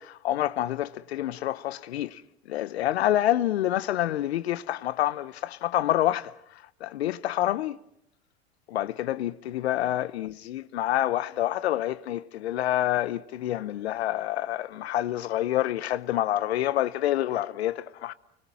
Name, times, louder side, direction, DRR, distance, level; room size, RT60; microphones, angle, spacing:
voice 1, 0.0-2.2 2.5-6.3 6.8-7.8 8.7-18.1, left 13 dB, 80° left, 0.9 m, -27 dB
29.5 x 24.0 x 6.1 m
hypercardioid pair, 85°, 32 cm